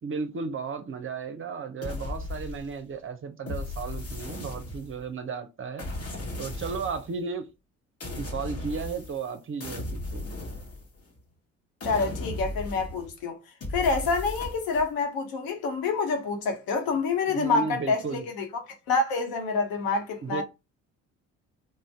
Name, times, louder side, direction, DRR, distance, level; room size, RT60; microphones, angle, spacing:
voice 1, 0.0-5.9 6.4-7.5 8.2-10.2 17.3-18.3 20.2-20.4, right 5 dB, 35° right, 0.6 m, -34 dB
sound 1, 1.8-2.9 3.5-5.1 5.8-7.1 8.0-9.3 9.6-11.2 11.8-13.2 13.6-14.9, left 2 dB, 40° left, 1.1 m, -36 dB
voice 2, 11.8-13.4 13.7-18.5 18.9-20.4, left 4 dB, 65° left, 0.9 m, -27 dB
2.5 x 2.1 x 3.3 m
hypercardioid pair, 55°, 38 cm